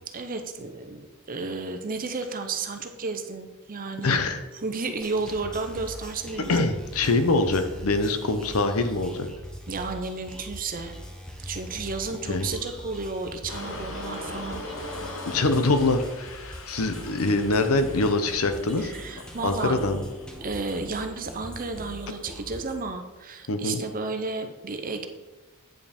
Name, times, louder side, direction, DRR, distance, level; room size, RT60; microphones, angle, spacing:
voice 1, 0.1-4.2 4.6-6.7 9.7-10.9 11.4-14.6 18.8-19.7 20.4-25.1, right 3 dB, 40° right, 7 dB, 0.7 m, -32 dB
voice 2, 4.0-4.4 6.5-9.3 12.3-12.5 15.3-18.9 19.4-20.0 23.5-23.8, left 2 dB, 90° left, 8 dB, 0.9 m, -24 dB
sound 1, 4.9-22.7, equal, 5° left, 1.2 m, -42 dB
sound 2, 13.5-20.3, left 1 dB, 70° left, 1.3 m, -40 dB
9.1 x 5.6 x 4.3 m, 1.1 s
head